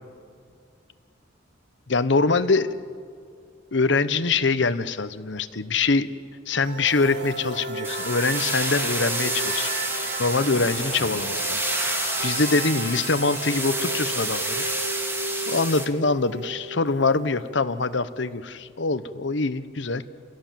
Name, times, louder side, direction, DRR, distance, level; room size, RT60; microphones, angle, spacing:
voice 1, 1.9-2.7 3.7-6.1 6.5-14.6 15.5-20.0, left 3 dB, 65° left, 12 dB, 1.0 m, -24 dB
sound 1, 6.6-18.4, right 2 dB, 60° right, 2.3 m, -35 dB
sound 2, 7.8-15.9, right 1 dB, 10° right, 1.9 m, -29 dB
29.5 x 17.0 x 7.6 m, 2.2 s
head